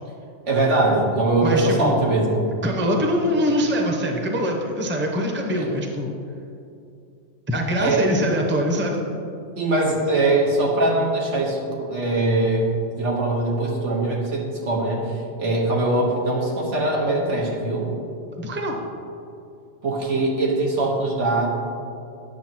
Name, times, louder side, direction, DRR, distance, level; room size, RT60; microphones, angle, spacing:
voice 1, 0.4-2.4 5.6-5.7 7.8-8.1 9.5-17.9 19.8-21.5, right 2 dB, 85° right, -3 dB, 1.7 m, -22 dB
voice 2, 1.4-2.0 2.6-6.1 7.5-9.0 18.4-18.7, equal, 10° right, 1 dB, 0.6 m, -23 dB
9.6 x 6.5 x 3.0 m, 2.6 s
omnidirectional pair, 1.2 m